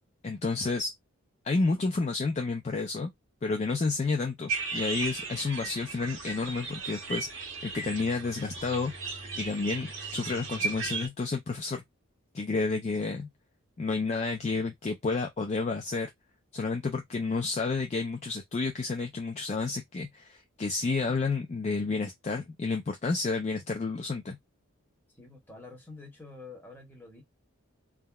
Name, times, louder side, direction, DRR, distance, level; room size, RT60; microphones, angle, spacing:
voice 1, 0.2-0.9 1.4-3.1 3.4-7.3 7.6-11.8 12.3-13.3 13.8-16.1 16.5-24.4, left 3 dB, 30° left, 0.3 m, -30 dB
sound 1, 4.5-11.1, right 4 dB, 60° right, 0.9 m, -36 dB
voice 2, 25.2-27.2, left 3 dB, 10° left, 1.0 m, -47 dB
3.4 x 2.1 x 2.2 m
head